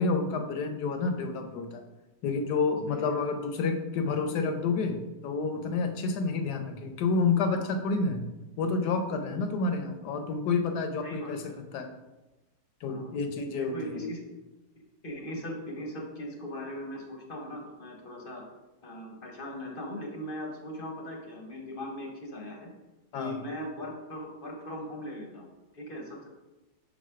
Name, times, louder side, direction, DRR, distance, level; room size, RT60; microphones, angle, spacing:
voice 1, 0.0-1.8 2.2-8.2 8.6-11.9 12.8-14.1 23.1-23.4, left 4 dB, 75° left, 6 dB, 1.3 m, -29 dB
voice 2, 2.9-3.2 11.0-11.6 12.9-13.1 13.6-14.2 15.0-18.4 18.8-22.7 23.1-26.3, left 1 dB, 40° left, 1 dB, 0.9 m, -39 dB
4.8 x 4.2 x 5.7 m, 1.1 s
omnidirectional pair, 1.8 m